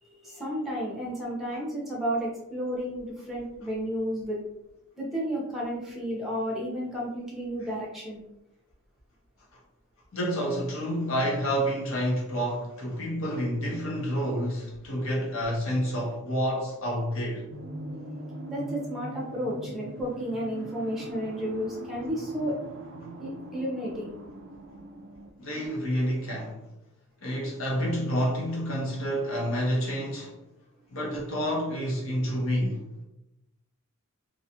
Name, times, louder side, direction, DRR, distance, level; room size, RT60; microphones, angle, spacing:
voice 1, 0.0-4.4 5.0-8.2 18.5-22.6 23.2-24.2, equal, ahead, 0.7 m, -32 dB
voice 2, 10.1-17.5 25.4-26.6 27.2-30.3 30.9-32.8, equal, 65° left, 0.8 m, -29 dB
sound 1, 17.5-25.3, right 1 dB, 55° right, 0.3 m, -41 dB
2.7 x 2.3 x 2.7 m
head